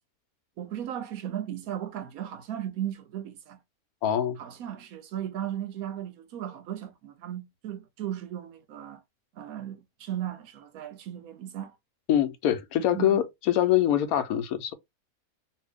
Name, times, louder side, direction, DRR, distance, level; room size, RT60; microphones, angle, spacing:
voice 1, 0.6-3.6 4.4-9.0 9.3-11.7 12.9-13.2, right 11 dB, 85° right, 1.1 m, -36 dB
voice 2, 4.0-4.4 12.1-14.7, left 11 dB, 85° left, 1.1 m, -24 dB
2.8 x 2.6 x 3.4 m
omnidirectional pair, 1.5 m